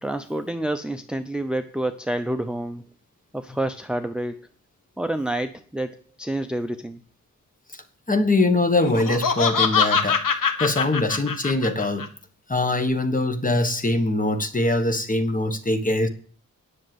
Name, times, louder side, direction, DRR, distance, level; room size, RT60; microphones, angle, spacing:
voice 1, 0.0-2.9 3.3-4.5 5.0-7.0, right 1 dB, 5° right, 0.6 m, -28 dB
voice 2, 8.1-10.2 10.6-12.1 12.5-16.1, left 2 dB, 25° left, 1.3 m, -22 dB
Laughter, 8.8-12.1, left 6 dB, 75° left, 1.4 m, -23 dB
10.5 x 6.5 x 7.8 m
wide cardioid pair, 100°, 33 cm